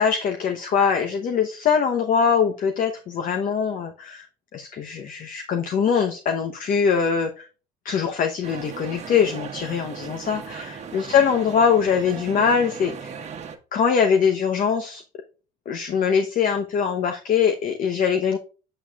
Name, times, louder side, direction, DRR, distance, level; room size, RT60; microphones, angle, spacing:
voice 1, 0.0-4.3 4.5-7.5 7.8-13.1 13.7-15.0 15.7-18.4, left 6 dB, 55° left, 5 dB, 0.9 m, -22 dB
sound 1, 8.4-13.6, right 6 dB, 40° right, 1.2 m, -37 dB
7.7 x 6.5 x 2.4 m, 0.34 s
cardioid pair, 110°, 17 cm